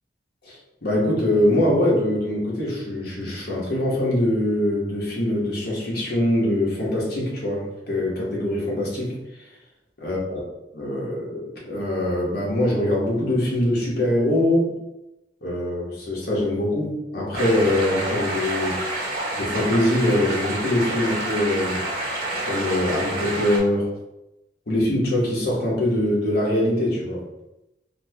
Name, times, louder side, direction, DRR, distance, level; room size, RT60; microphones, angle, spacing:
voice 1, 0.4-9.2 10.0-10.2 10.7-14.8 15.4-18.8 19.4-21.8 22.4-23.9 24.7-27.2, left 1 dB, 65° left, -4 dB, 1.2 m, -23 dB
sound 1, 17.3-23.6, right 2 dB, 55° right, 1.2 m, -28 dB
4.1 x 2.2 x 2.8 m, 0.94 s
head